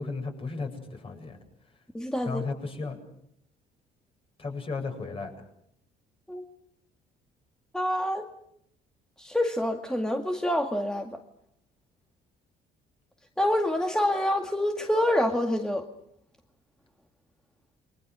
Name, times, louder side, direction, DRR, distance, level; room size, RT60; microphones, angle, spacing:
voice 1, 0.0-1.4 2.2-3.0 4.4-5.3, left 4 dB, 35° left, 5 dB, 7.7 m, -34 dB
voice 2, 1.9-2.4 6.3-6.4 7.7-8.3 9.2-11.2 13.4-15.9, left 1 dB, 5° left, 3 dB, 2.1 m, -27 dB
29.5 x 23.5 x 6.4 m, 0.73 s
cardioid pair, 110°, 17 cm